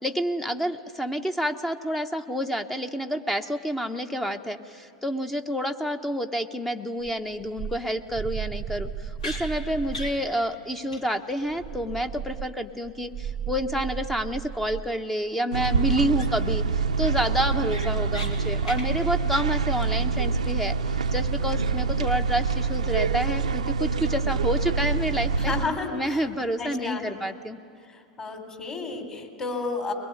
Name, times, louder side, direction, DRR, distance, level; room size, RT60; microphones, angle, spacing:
voice 1, 0.0-25.5 25.9-27.6, equal, 5° left, 8 dB, 1.0 m, -29 dB
sound 1, 7.0-10.3 11.5-14.9, right 9 dB, 40° right, 0.7 m, -35 dB
sound 2, 9.2-9.4 9.9-10.2 10.5-10.6 10.9-11.0 11.3-11.4 15.6-15.7 16.2-16.5 16.9-17.0 17.4-18.3 18.6-18.9, left 2 dB, 80° left, 3.4 m, -37 dB
sound 3, 15.5-25.7, right 5 dB, 85° right, 0.7 m, -26 dB
voice 2, 21.4-21.8 25.4-26.2 26.6-27.0 27.9-29.9, left 3 dB, 25° left, 4 dB, 4.0 m, -32 dB
22.0 x 21.5 x 10.0 m, 2.4 s
hypercardioid pair, 90°, 4 cm